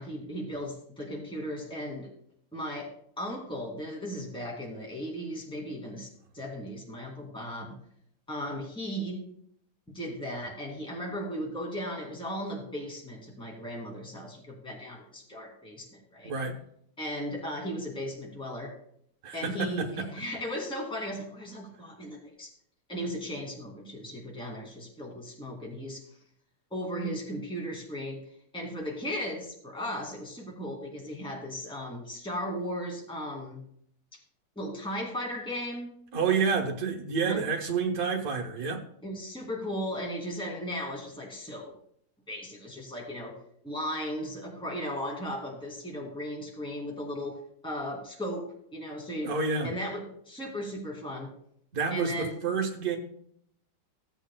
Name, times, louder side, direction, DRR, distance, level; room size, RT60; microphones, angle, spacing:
voice 1, 0.0-2.1 2.5-2.9 3.2-6.1 6.3-7.7 8.3-9.2 9.9-16.3 17.0-18.7 19.3-22.5 22.9-26.0 26.7-28.2 28.5-33.6 34.6-35.9 37.2-37.4 39.0-41.7 42.3-43.3 43.6-48.5 48.7-49.3 49.6-51.3 51.9-52.3, equal, 5° left, -1 dB, 2.0 m, -36 dB
voice 2, 16.2-16.6 19.2-20.0 36.1-38.8 49.2-49.7 51.7-53.0, right 5 dB, 55° right, 1 dB, 1.4 m, -29 dB
16.0 x 8.1 x 2.2 m, 0.67 s
omnidirectional pair, 2.0 m